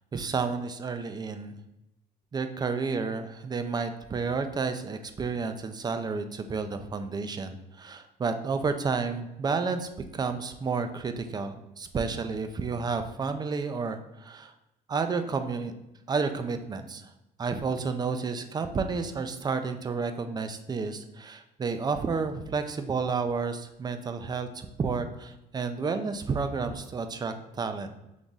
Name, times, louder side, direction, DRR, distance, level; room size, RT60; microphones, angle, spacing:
voice 1, 0.1-1.6 2.3-14.5 14.9-15.7 16.1-17.1 17.4-27.9, right 4 dB, 25° right, 8 dB, 0.4 m, -31 dB
4.0 x 3.0 x 3.6 m, 0.91 s
cardioid pair, 110°, 17 cm